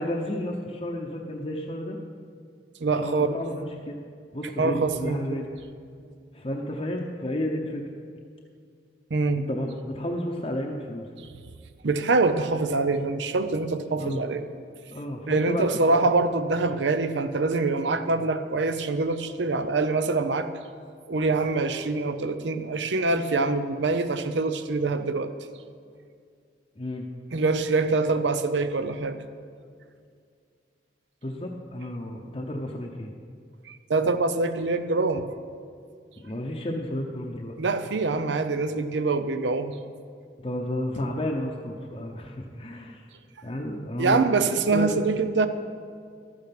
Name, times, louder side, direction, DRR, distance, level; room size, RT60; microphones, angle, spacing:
voice 1, 0.0-2.0 3.0-4.0 4.3-5.5 6.3-7.8 9.3-11.1 14.0-14.3 14.9-16.1 26.8-27.1 31.2-33.1 36.2-37.6 40.4-43.0 43.4-45.0, left 1 dB, 30° left, 0 dB, 0.7 m, -32 dB
voice 2, 2.8-3.3 4.6-5.4 9.1-9.4 11.8-14.4 15.3-20.5 21.1-25.3 27.3-29.2 33.7-35.3 37.6-39.7 44.0-45.5, right 3 dB, 85° right, 10 dB, 0.7 m, -25 dB
12.0 x 8.9 x 5.9 m, 2.2 s
head